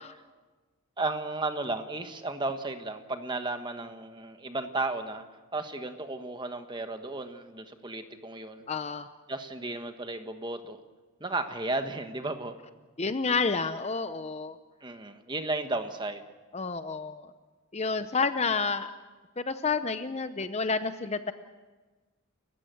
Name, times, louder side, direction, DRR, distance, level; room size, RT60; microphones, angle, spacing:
voice 1, 1.0-5.2 5.5-8.6 9.3-10.8 11.2-12.6 14.8-16.3, right 2 dB, 20° right, 7 dB, 1.4 m, -34 dB
voice 2, 8.7-9.1 13.0-14.6 16.5-17.3 17.7-18.9 19.4-21.3, left 4 dB, 30° left, 11 dB, 0.7 m, -29 dB
30.0 x 15.0 x 7.9 m, 1.3 s
head